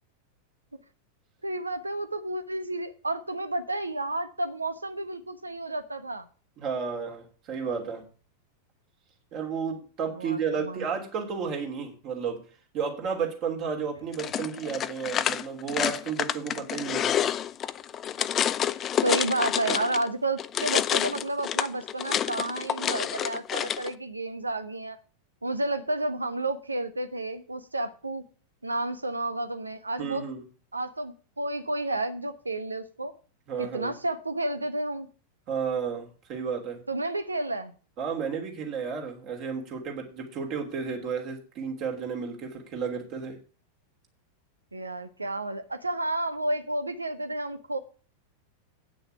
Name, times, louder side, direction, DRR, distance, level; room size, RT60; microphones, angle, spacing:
voice 1, 1.4-6.3 10.1-10.9 19.0-25.0 25.4-28.2 28.6-30.2 30.7-33.1 33.6-35.1 36.9-37.7 44.7-47.8, right 2 dB, 80° right, 10 dB, 1.1 m, -31 dB
voice 2, 6.6-8.1 9.3-12.5 12.7-17.2 30.0-30.4 33.5-33.9 35.5-36.8 38.0-43.4, right 6 dB, 40° right, 2 dB, 2.9 m, -32 dB
sound 1, 14.1-20.1 20.4-23.9, left 10 dB, 30° left, 0.5 m, -28 dB
8.8 x 6.4 x 8.3 m, 0.38 s
figure-of-eight pair, 90°, 0 cm